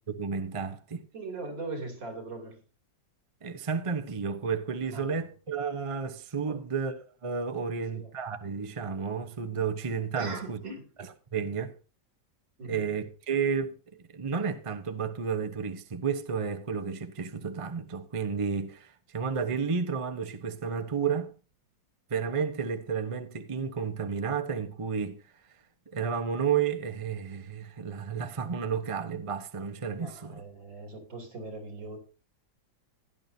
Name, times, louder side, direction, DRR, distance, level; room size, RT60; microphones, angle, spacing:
voice 1, 0.1-1.0 3.4-6.9 7.2-10.6 11.3-11.7 12.6-13.7 14.1-21.3 22.1-25.2 25.9-30.4, right 6 dB, 30° right, 0.6 m, -31 dB
voice 2, 1.1-2.6 4.9-5.1 6.5-6.6 7.6-8.1 10.2-10.9 12.6-12.8 30.0-32.0, right 3 dB, 75° right, 3.7 m, -40 dB
16.0 x 11.0 x 2.7 m
omnidirectional pair, 2.0 m